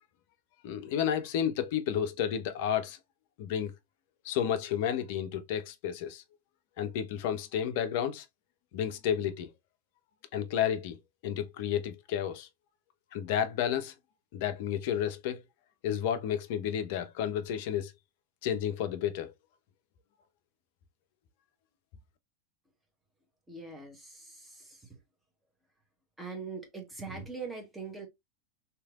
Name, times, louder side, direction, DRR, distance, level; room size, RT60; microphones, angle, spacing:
voice 1, 0.6-3.0 3.4-3.7 4.2-6.2 6.8-8.2 8.7-9.5 10.3-11.0 11.2-12.5 13.1-13.9 14.3-15.4 15.8-17.9 18.4-19.3, left 9 dB, 50° left, 0.5 m, -31 dB
voice 2, 23.5-24.8 26.2-28.1, right 4 dB, 10° right, 1.1 m, -42 dB
3.2 x 2.8 x 2.3 m
figure-of-eight pair, 90°, 0 cm